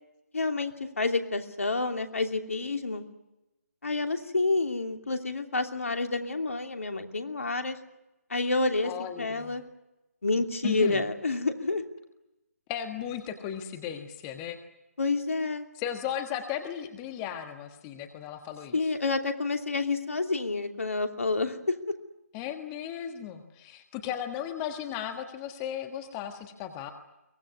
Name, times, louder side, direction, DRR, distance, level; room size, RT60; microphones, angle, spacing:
voice 1, 0.3-3.0 3.8-7.8 8.3-9.6 10.2-11.8 15.0-15.6 18.7-21.7, left 3 dB, 60° left, 5 dB, 2.9 m, -29 dB
voice 2, 8.8-9.6 10.6-11.0 12.7-14.6 15.7-18.7 22.3-26.9, left 9 dB, 15° left, 6 dB, 1.5 m, -36 dB
23.5 x 19.5 x 9.8 m, 0.95 s
figure-of-eight pair, 145°, 8 cm